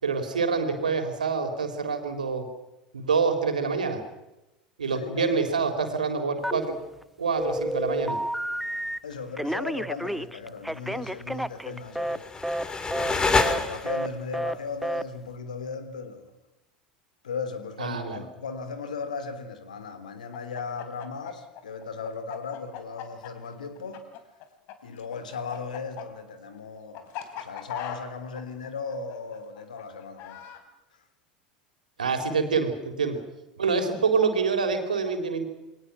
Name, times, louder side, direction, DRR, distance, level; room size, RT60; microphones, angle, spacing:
voice 1, 0.0-2.5 2.9-4.0 4.8-6.8 7.2-8.2 17.8-18.2 32.0-33.2 33.6-35.4, right 5 dB, 75° right, 3.9 m, -26 dB
voice 2, 4.9-5.6 9.0-12.3 13.0-16.3 17.2-24.0 24.8-30.4 33.1-33.2, left 5 dB, 70° left, 3.2 m, -37 dB
Telephone, 6.4-7.0 7.4-9.0 9.4-12.2 12.4-12.7 12.9-13.1 13.4-13.6 13.9-14.1 14.3-14.6 14.8-15.0, equal, ahead, 0.8 m, -30 dB
sound 1, 11.8-14.2, left 3 dB, 20° left, 3.2 m, -27 dB
Chicken rooster, 20.3-24.7 25.0-30.6, left 11 dB, 50° left, 3.7 m, -39 dB
29.5 x 23.0 x 6.0 m
figure-of-eight pair, 80°, 4 cm